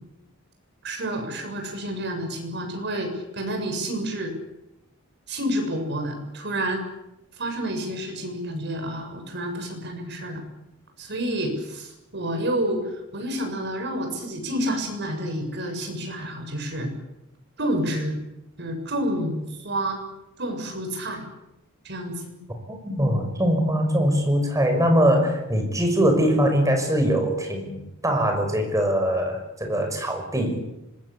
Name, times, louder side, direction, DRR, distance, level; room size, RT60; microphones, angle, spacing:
voice 1, 0.8-4.3 5.3-6.8 7.4-10.4 11.0-16.9 17.6-18.2 18.6-20.0 20.4-21.2 21.8-22.4, right 1 dB, 55° right, 4 dB, 7.2 m, -29 dB
voice 2, 22.7-30.6, equal, 15° right, 4 dB, 5.9 m, -22 dB
26.0 x 21.5 x 8.5 m, 0.89 s
head